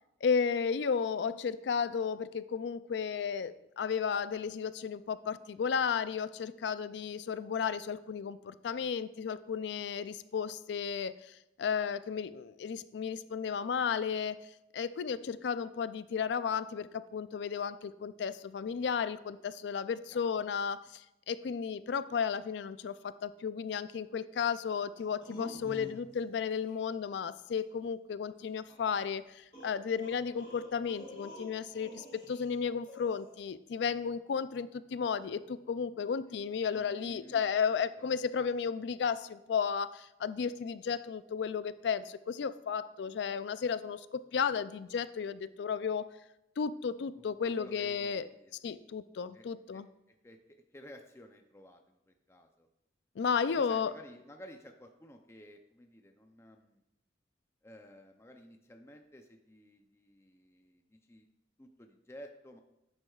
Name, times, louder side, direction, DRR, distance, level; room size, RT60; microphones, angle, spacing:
voice 1, 0.2-14.5 14.7-46.1 46.6-48.3 48.6-49.9 53.2-53.9, left 6 dB, 70° left, 15 dB, 0.3 m, -34 dB
voice 2, 20.1-20.4 36.7-37.4 38.0-38.2 43.0-43.4 47.2-48.5 49.3-49.5 49.7-49.8 50.1-50.4 50.7-52.7 53.5-56.8 57.6-61.3 61.6-62.6, equal, 15° left, 4 dB, 0.5 m, -54 dB
sound 1, 25.0-26.2 26.5-26.8 28.7-28.8 29.5-32.5 32.8-33.4, equal, 30° left, 2.6 m, -48 dB
10.5 x 7.7 x 2.4 m, 0.89 s
head